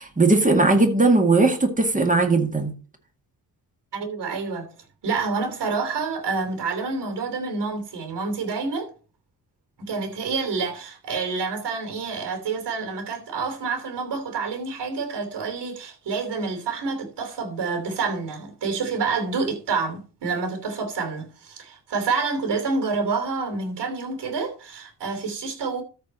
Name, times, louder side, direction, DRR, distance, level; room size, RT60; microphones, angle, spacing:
voice 1, 0.0-2.7, right 3 dB, 20° right, 2.0 m, -18 dB
voice 2, 3.9-4.7 5.0-8.9 9.8-25.8, right 4 dB, 85° right, 3.0 m, -28 dB
13.5 x 4.6 x 4.3 m
wide cardioid pair, 120°, 40 cm